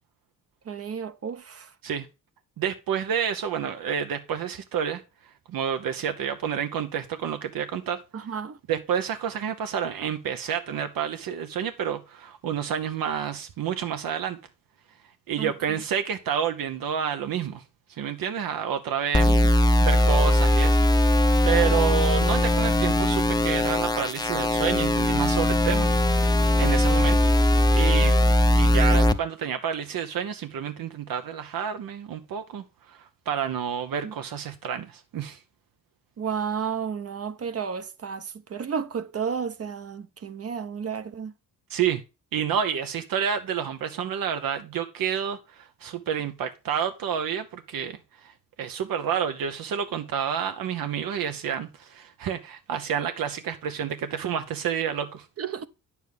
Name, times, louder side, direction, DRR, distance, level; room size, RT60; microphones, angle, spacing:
voice 1, 0.7-1.7 8.1-8.6 15.4-15.5 19.3-19.5 34.0-34.1 36.2-41.3 55.4-55.7, right 7 dB, 45° right, 0.8 m, -32 dB
voice 2, 2.6-8.0 8.7-14.4 15.3-17.6 17.9-20.9 21.4-28.2 28.6-35.4 41.7-42.0 42.3-55.3, right 8 dB, 75° right, 0.9 m, -29 dB
sound 1, 19.1-29.1, left 1 dB, 10° left, 0.6 m, -20 dB
9.4 x 7.2 x 3.4 m
cardioid pair, 130°, 34 cm